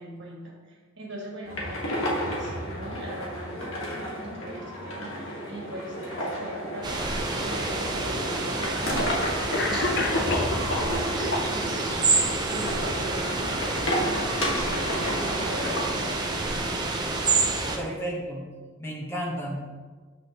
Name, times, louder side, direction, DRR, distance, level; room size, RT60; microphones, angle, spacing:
voice 1, 0.0-12.2 12.5-16.8 17.6-18.1, right 1 dB, 60° right, -3 dB, 1.6 m, -40 dB
sound 1, 1.4-15.9, equal, 75° left, 1.5 m, -32 dB
sound 2, 6.8-17.8, right 3 dB, 20° right, 0.6 m, -28 dB
Cough, 9.5-10.9 11.3-11.9, left 3 dB, 55° left, 0.6 m, -28 dB
voice 2, 17.7-18.4 18.8-19.6, equal, 10° left, -3 dB, 1.0 m, -32 dB
7.6 x 6.1 x 2.9 m, 1.4 s
head